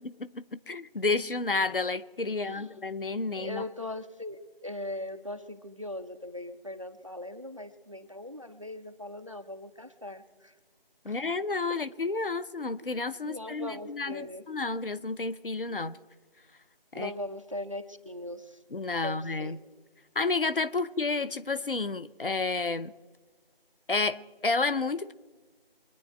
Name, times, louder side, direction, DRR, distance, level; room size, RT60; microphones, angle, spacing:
voice 1, 0.2-3.6 11.0-14.2 14.5-16.0 16.9-17.1 18.7-19.6 20.2-22.9 23.9-25.1, left 3 dB, 65° left, 0.8 m, -30 dB
voice 2, 2.3-2.8 3.3-10.6 11.1-11.3 11.7-11.8 13.2-14.4 15.7-15.9 16.9-18.6 19.0-19.6, left 1 dB, 35° right, 0.6 m, -40 dB
25.0 x 9.7 x 4.5 m
figure-of-eight pair, 170°, 30 cm